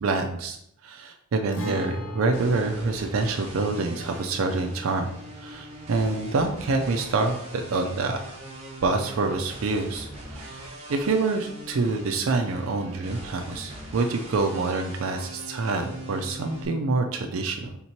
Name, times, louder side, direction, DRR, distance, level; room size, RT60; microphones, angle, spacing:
voice 1, 0.0-0.6 0.8-8.4 8.8-10.6 10.9-17.8, right 3 dB, 75° right, 4 dB, 0.4 m, -26 dB
Guitar, 1.5-9.1 9.4-9.5 11.5-11.6, left 1 dB, 80° left, 0.9 m, -41 dB
sound 1, 2.3-16.7, right 1 dB, 35° right, 0.9 m, -41 dB
3.7 x 2.9 x 4.3 m, 0.75 s
head